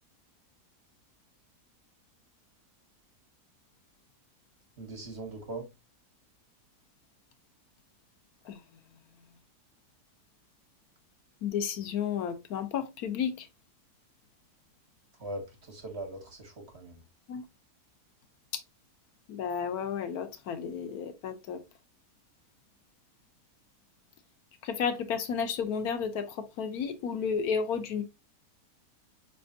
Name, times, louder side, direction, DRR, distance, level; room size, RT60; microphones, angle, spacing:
voice 1, 4.8-5.7 15.2-17.0, right 2 dB, 45° right, 1.3 m, -40 dB
voice 2, 11.4-13.5 17.3-17.4 18.5-18.6 19.3-21.6 24.6-28.0, left 7 dB, 75° left, 1.2 m, -32 dB
5.4 x 3.4 x 2.6 m
omnidirectional pair, 1.7 m